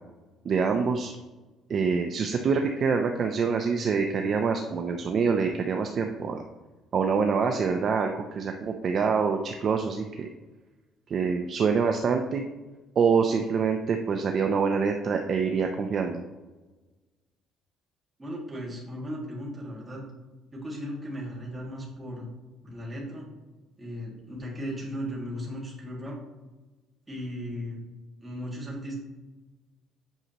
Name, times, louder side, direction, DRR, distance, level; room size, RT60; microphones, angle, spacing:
voice 1, 0.4-1.1 1.7-6.4 6.9-10.3 11.1-12.4 13.0-16.2, right 5 dB, 35° right, 4 dB, 0.4 m, -25 dB
voice 2, 18.2-20.0 20.5-22.3 22.6-23.3 23.8-26.2 27.1-27.8 28.2-28.9, equal, 15° right, -4 dB, 1.9 m, -36 dB
8.0 x 6.1 x 2.9 m, 1.2 s
cardioid pair, 175°, 0 cm